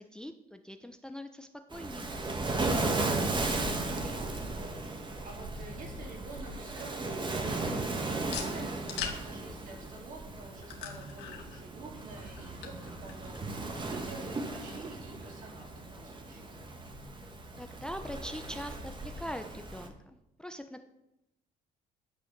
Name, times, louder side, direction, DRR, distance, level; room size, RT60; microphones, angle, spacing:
voice 1, 0.0-2.1 17.6-20.8, equal, 5° left, 8 dB, 0.6 m, -42 dB
Waves surf, 1.7-19.9, right 2 dB, 30° right, 1.6 m, -36 dB
voice 2, 3.1-16.6, right 3 dB, 55° right, -1 dB, 3.8 m, -49 dB
sound 1, 5.0-19.2, left 6 dB, 80° left, 2.0 m, -47 dB
10.5 x 6.3 x 6.5 m, 0.91 s
cardioid pair, 110°, 17 cm